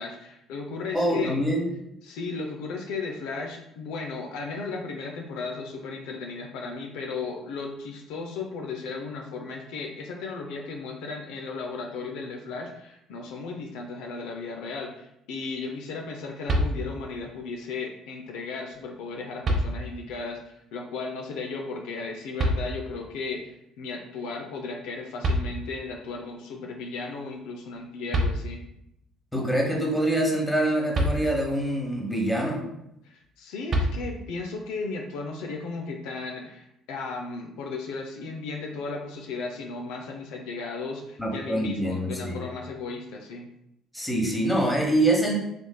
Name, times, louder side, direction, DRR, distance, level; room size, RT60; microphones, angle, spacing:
voice 1, 0.0-1.4 2.0-28.6 33.0-43.5, left 4 dB, 75° left, 2 dB, 0.4 m, -35 dB
voice 2, 0.9-1.7 29.3-32.7 41.2-42.4 43.9-45.4, right 1 dB, 10° left, -1 dB, 1.0 m, -25 dB
sound 1, 16.5-17.2 18.7-18.8 19.4-20.2 22.4-23.1 24.9-25.0 25.2-26.1 27.8-27.9 28.1-28.9 30.9-31.7 33.7-34.5, equal, 50° right, 0.6 m, -28 dB
3.3 x 3.1 x 2.2 m, 0.81 s
hypercardioid pair, 55°, 0 cm